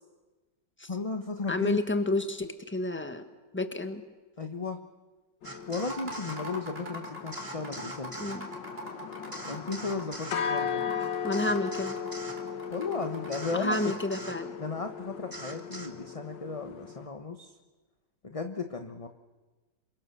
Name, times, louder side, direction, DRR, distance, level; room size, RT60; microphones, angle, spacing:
voice 1, 0.9-1.8 4.4-4.8 5.7-8.3 9.4-10.8 12.7-13.9 14.6-17.5 18.2-19.1, left 4 dB, 25° left, 6 dB, 1.0 m, -35 dB
voice 2, 1.5-3.2 3.5-4.0 8.2-8.5 11.2-12.0 13.5-14.5, left 1 dB, 5° left, 8 dB, 1.4 m, -30 dB
sound 1, 5.4-17.1, left 7 dB, 85° left, 1.9 m, -37 dB
sound 2, 5.4-6.4 7.3-8.4 9.3-10.4 11.3-12.4 13.3-14.4 15.3-15.9, right 2 dB, 10° right, 1.5 m, -42 dB
sound 3, 5.7-14.3, right 1 dB, 30° right, 3.8 m, -43 dB
27.5 x 24.0 x 6.9 m, 1.2 s
omnidirectional pair, 1.9 m